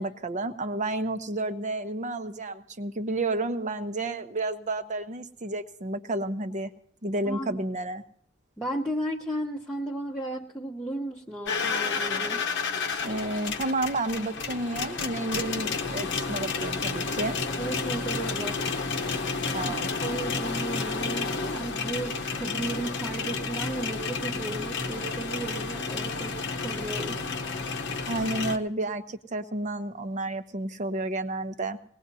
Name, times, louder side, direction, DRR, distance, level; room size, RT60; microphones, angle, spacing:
voice 1, 0.0-6.7 7.0-8.0 13.0-17.4 19.5-19.9 28.1-31.8, right 2 dB, 35° right, 8 dB, 0.8 m, -31 dB
voice 2, 7.3-7.6 8.6-12.5 17.6-18.7 19.6-19.7 20.0-27.4, right 1 dB, 5° left, -5 dB, 0.9 m, -34 dB
sound 1, 11.5-28.6, left 4 dB, 60° left, 0.9 m, -31 dB
20.5 x 18.5 x 2.7 m, 0.62 s
head